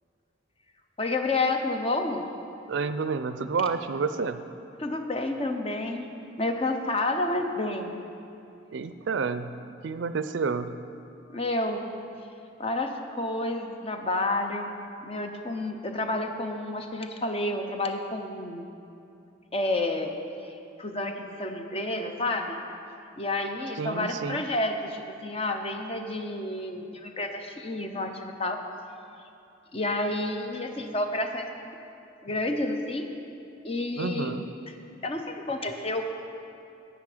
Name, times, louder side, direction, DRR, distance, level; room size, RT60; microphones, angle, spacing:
voice 1, 1.0-2.3 4.8-6.1 6.4-7.9 11.3-11.8 12.6-14.7 15.0-18.7 19.5-20.1 20.4-22.6 23.2-28.6 29.7-31.8 32.2-33.1 33.6-34.3 35.0-36.1, left 2 dB, 30° left, 5 dB, 0.6 m, -30 dB
voice 2, 2.7-4.4 8.7-9.5 9.8-10.7 23.8-24.4 34.0-34.4, right 5 dB, 65° right, 11 dB, 0.4 m, -29 dB
9.7 x 9.3 x 4.9 m, 2.7 s
head